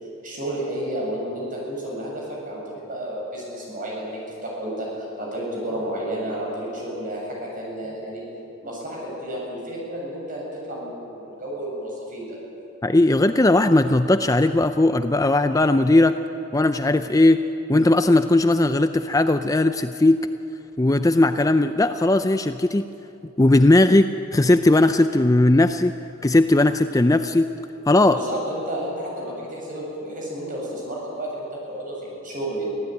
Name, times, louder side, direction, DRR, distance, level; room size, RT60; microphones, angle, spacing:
voice 1, 0.2-8.2 8.6-12.4 28.1-32.7, right 1 dB, 40° right, -3 dB, 8.0 m, -31 dB
voice 2, 12.8-16.2 16.5-17.4 17.7-20.3 20.8-22.8 23.4-25.9 26.2-27.5 27.9-28.2, left 2 dB, 15° left, 9 dB, 0.5 m, -18 dB
25.0 x 16.0 x 9.3 m, 2.8 s
head